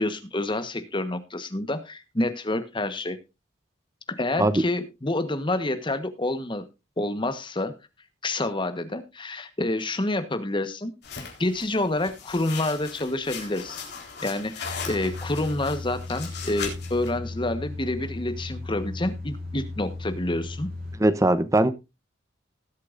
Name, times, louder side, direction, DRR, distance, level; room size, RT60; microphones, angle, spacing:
voice 1, 0.0-3.2 4.1-6.6 7.0-7.8 8.2-10.9 11.4-13.8 14.2-20.7, left 2 dB, 25° left, 1.2 m, -28 dB
sound 1, 11.0-17.1, left 6 dB, 60° left, 4.0 m, -38 dB
sound 2, 14.6-21.0, left 2 dB, 50° right, 4.3 m, -36 dB
voice 2, 21.0-21.7, right 1 dB, 15° right, 0.8 m, -20 dB
19.5 x 8.5 x 2.6 m
head